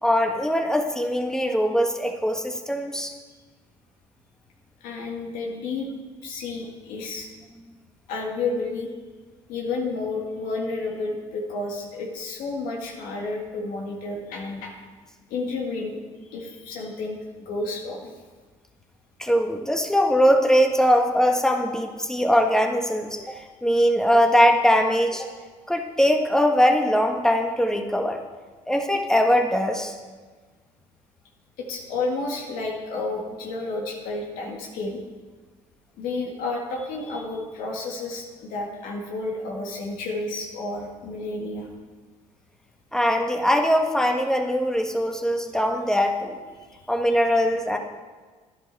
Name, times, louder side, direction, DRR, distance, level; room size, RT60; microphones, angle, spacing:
voice 1, 0.0-3.1 19.2-25.3 25.7-28.2 28.7-29.9 42.9-46.4 46.9-47.8, equal, 5° left, 3 dB, 1.5 m, -21 dB
voice 2, 4.8-5.9 6.2-7.3 8.1-8.9 9.5-14.7 15.3-16.0 16.3-18.1 31.6-35.0 36.0-41.7 46.7-46.8, left 3 dB, 80° left, -1 dB, 2.0 m, -31 dB
11.5 x 10.0 x 4.1 m, 1.4 s
supercardioid pair, 70°, 14 cm